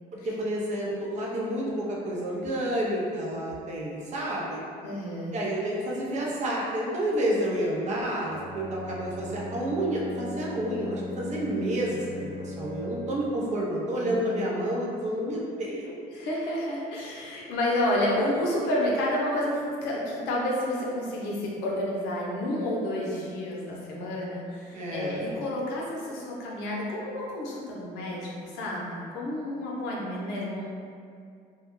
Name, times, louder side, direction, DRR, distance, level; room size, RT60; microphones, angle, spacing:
voice 1, 0.2-4.6 5.3-16.0 24.7-25.3, right 1 dB, 45° right, -4 dB, 0.6 m, -30 dB
voice 2, 4.8-5.4 14.0-14.6 16.1-30.7, left 1 dB, 90° left, -4 dB, 0.6 m, -30 dB
Bowed string instrument, 8.2-13.3, left 1 dB, 35° left, 0.8 m, -38 dB
2.2 x 2.0 x 3.0 m, 2.3 s
cardioid pair, 110°, 17 cm